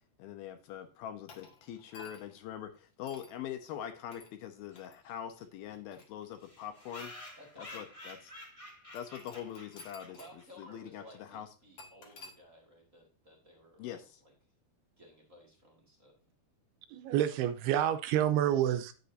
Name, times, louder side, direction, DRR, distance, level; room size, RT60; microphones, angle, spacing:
voice 1, 0.0-7.1 7.6-8.2 8.9-10.2 10.6-11.5 13.8-14.2, left 10 dB, 75° left, 2.6 m, -43 dB
sound 1, 1.3-2.4 3.1-3.4 4.1-4.3 4.8-5.0 5.7-6.8 7.6-7.7 9.0-10.4 10.6-10.7 11.8-12.4, left 3 dB, 45° left, 2.1 m, -54 dB
sound 2, 4.7-4.8 5.0-5.1 5.4-5.5 5.7-5.8 6.4-10.6, left 1 dB, 25° left, 0.6 m, -50 dB
voice 2, 7.4-7.9 10.1-14.3 15.0-16.2, equal, 30° right, 1.5 m, -57 dB
voice 3, 16.9-18.9, right 11 dB, 80° right, 2.6 m, -28 dB
10.0 x 8.0 x 2.7 m
omnidirectional pair, 4.7 m